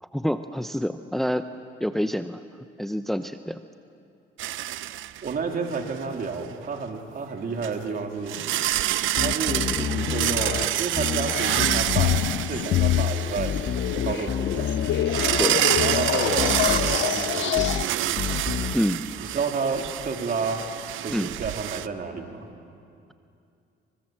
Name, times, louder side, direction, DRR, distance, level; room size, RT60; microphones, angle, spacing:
voice 1, 0.0-1.5 1.8-2.4 2.8-3.6 15.4-15.6 18.7-19.1 21.1-21.3, equal, ahead, 9 dB, 0.8 m, -27 dB
sound 1, 4.4-5.4 5.7-5.9 7.6-7.7 8.3-21.9, right 13 dB, 80° right, 0.7 m, -28 dB
voice 2, 5.2-8.3 9.2-13.5 14.0-14.7 15.8-18.2 19.3-20.7 21.0-22.5, right 4 dB, 50° right, 3 dB, 3.1 m, -31 dB
sound 2, 9.2-10.7 11.0-12.2 12.8-13.0 13.4-15.5 15.8-17.0 17.6-17.8 18.2-18.7, left 8 dB, 55° left, 1.1 m, -29 dB
sound 3, 11.6-17.9, left 13 dB, 70° left, 0.6 m, -26 dB
27.0 x 25.5 x 7.7 m, 2.5 s
cardioid pair, 90°, 20 cm